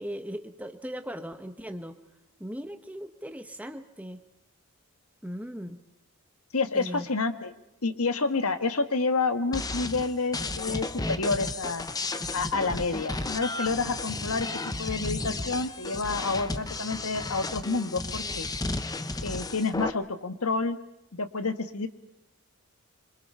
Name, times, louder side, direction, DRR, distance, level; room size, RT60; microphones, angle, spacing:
voice 1, 0.0-2.0 2.4-4.2 5.2-5.8 6.7-7.0, equal, 5° right, 7 dB, 1.2 m, -38 dB
voice 2, 6.5-7.5 7.8-11.8 12.3-14.5 14.8-18.5 19.2-20.8 21.2-21.9, left 3 dB, 75° left, 9 dB, 1.6 m, -29 dB
sound 1, 9.5-19.9, left 2 dB, 15° left, 0.8 m, -33 dB
26.5 x 25.0 x 5.7 m, 0.84 s
head